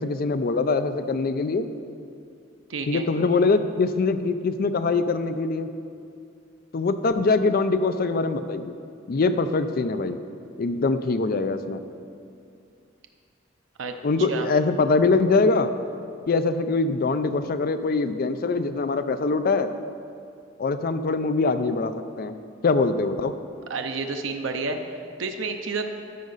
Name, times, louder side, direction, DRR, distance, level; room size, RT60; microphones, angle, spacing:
voice 1, 0.0-1.7 2.9-5.7 6.7-8.7 9.1-10.2 10.6-11.8 14.0-15.7 16.3-19.7 20.6-22.3 22.6-23.3, left 3 dB, 50° left, 10 dB, 0.4 m, -23 dB
voice 2, 2.7-3.1 13.8-13.9 14.3-14.5 23.7-25.9, right 4 dB, 85° right, 5 dB, 0.6 m, -30 dB
12.0 x 6.5 x 4.0 m, 2.5 s
head